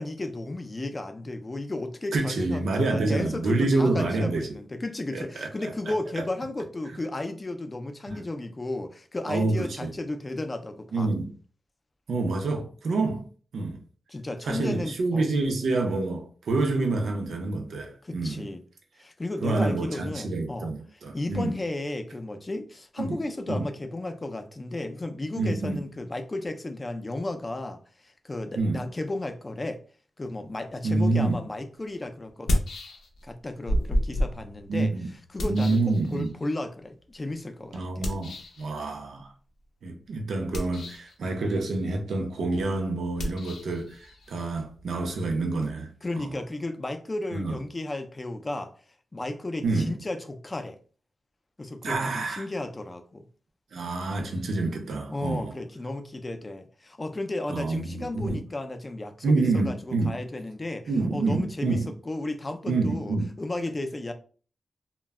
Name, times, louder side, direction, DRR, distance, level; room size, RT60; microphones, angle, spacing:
voice 1, 0.0-11.1 14.1-15.3 18.0-18.6 19.0-20.7 21.1-29.8 30.2-32.6 33.2-34.9 35.3-38.1 46.0-48.7 49.1-50.8 51.6-53.2 55.1-61.8 62.1-64.1, left 2 dB, 25° left, 0.4 m, -34 dB
voice 2, 2.1-4.6 5.1-6.2 8.1-8.2 9.3-9.9 10.9-11.3 12.1-13.3 13.5-13.8 14.4-18.4 19.4-21.5 23.0-23.2 23.5-23.7 25.4-25.8 28.6-28.8 30.8-31.4 34.7-35.1 35.4-36.3 37.7-39.3 39.8-45.9 46.2-46.3 47.3-47.6 49.6-49.9 51.8-52.4 53.7-55.6 57.5-58.4 59.2-60.2 60.9-61.9 62.7-63.3, right 3 dB, 85° right, 0.5 m, -27 dB
sound 1, 31.3-31.4 32.3-33.3 33.7-36.5 38.0-38.6 40.4-41.2 43.1-45.7, equal, 90° left, 0.5 m, -31 dB
2.2 x 2.0 x 3.4 m
wide cardioid pair, 105°, 0 cm